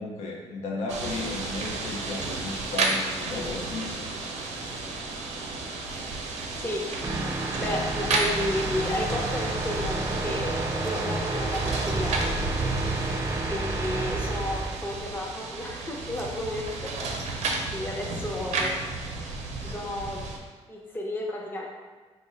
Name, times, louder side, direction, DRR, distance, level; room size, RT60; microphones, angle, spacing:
voice 1, 0.0-4.1, left 3 dB, 80° left, -1 dB, 0.6 m, -34 dB
sound 1, 0.9-20.4, right 3 dB, 85° right, 0.5 m, -32 dB
sound 2, 7.0-14.8, right 2 dB, 25° right, 0.4 m, -30 dB
voice 2, 7.6-12.2 13.4-17.2 17.7-18.7 19.6-20.2 20.7-21.7, left 1 dB, 20° left, -2 dB, 0.7 m, -32 dB
3.6 x 2.1 x 3.8 m, 1.3 s
cardioid pair, 80°, 11 cm